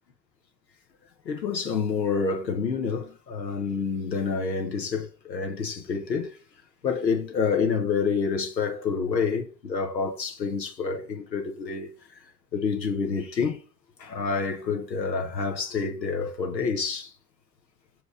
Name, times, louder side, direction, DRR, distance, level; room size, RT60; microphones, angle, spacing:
voice 1, 1.2-6.3 6.8-11.9 12.5-13.6 14.0-17.1, left 5 dB, 90° left, 1.2 m, -28 dB
6.8 x 5.0 x 4.9 m
figure-of-eight pair, 55°, 49 cm